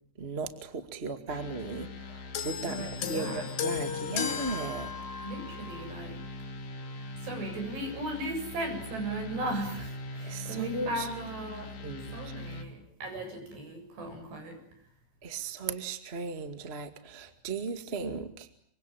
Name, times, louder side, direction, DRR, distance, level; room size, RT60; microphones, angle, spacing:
voice 1, 0.2-4.9 10.2-11.1 11.8-12.2 15.2-18.5, right 4 dB, 25° right, 9 dB, 1.3 m, -36 dB
sound 1, 1.3-12.7, left 2 dB, 50° left, 3.9 m, -42 dB
sound 2, 2.3-5.9 6.8-7.0, left 7 dB, 80° left, 4.2 m, -35 dB
voice 2, 2.6-3.5 5.2-6.2 7.2-11.8 12.1-14.6, right 1 dB, 80° right, 5 dB, 9.6 m, -37 dB
26.5 x 25.0 x 9.0 m, 0.63 s
omnidirectional pair, 4.8 m